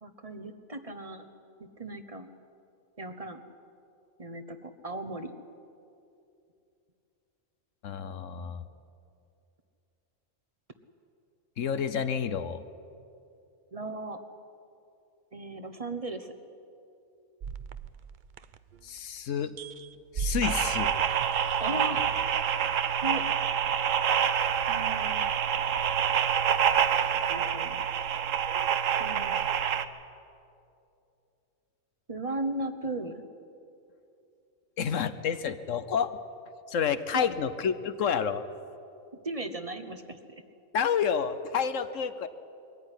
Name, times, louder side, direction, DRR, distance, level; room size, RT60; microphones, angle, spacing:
voice 1, 0.0-1.3 1.8-2.3 3.0-3.4 4.2-5.3 13.7-14.2 15.3-16.3 21.6-22.1 23.0-23.2 24.7-25.3 27.3-27.8 29.0-29.3 32.1-33.2 37.1-37.3 39.2-40.4, right 2 dB, 30° right, 8 dB, 1.0 m, -36 dB
voice 2, 7.8-8.6 11.6-12.6 18.8-19.5 20.1-20.9 34.8-36.2 36.7-38.4 40.7-42.3, left 7 dB, 75° left, 12 dB, 1.2 m, -29 dB
sound 1, 17.4-19.0 19.3-22.4, right 6 dB, 50° right, 0.6 m, -38 dB
sound 2, 20.4-29.9, right 8 dB, 75° right, 1.2 m, -27 dB
22.0 x 14.5 x 9.9 m, 2.6 s
omnidirectional pair, 1.3 m